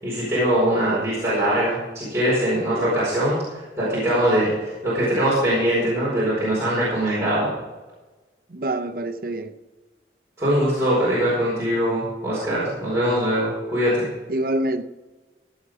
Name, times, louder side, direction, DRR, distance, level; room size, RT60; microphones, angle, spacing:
voice 1, 0.0-7.5 10.4-14.1, equal, 15° right, 5.0 m, -22 dB
voice 2, 8.5-9.6 14.3-14.8, right 1 dB, 55° right, 0.8 m, -26 dB
16.0 x 8.3 x 5.0 m
head